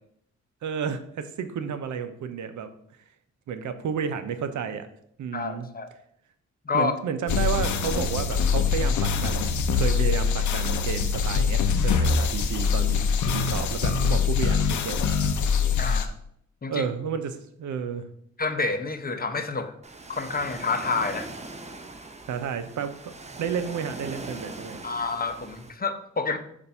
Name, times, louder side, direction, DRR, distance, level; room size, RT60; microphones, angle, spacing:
voice 1, 0.6-2.7 3.5-4.9 5.2-5.7 6.7-15.0 16.7-18.1 22.3-23.1 23.4-24.8, right 7 dB, 75° right, 9 dB, 0.7 m, -31 dB
voice 2, 5.3-5.9 6.7-6.9 15.8-16.1 16.6-16.8 18.4-19.7 20.1-21.3 24.8-26.4, left 4 dB, 30° left, 8 dB, 0.8 m, -28 dB
sound 1, 7.3-16.1, left 5 dB, 80° left, 0.7 m, -24 dB
Ocean, 19.8-25.7, right 2 dB, 25° right, 0.7 m, -41 dB
6.8 x 2.6 x 5.3 m, 0.70 s
cardioid pair, 55°, 29 cm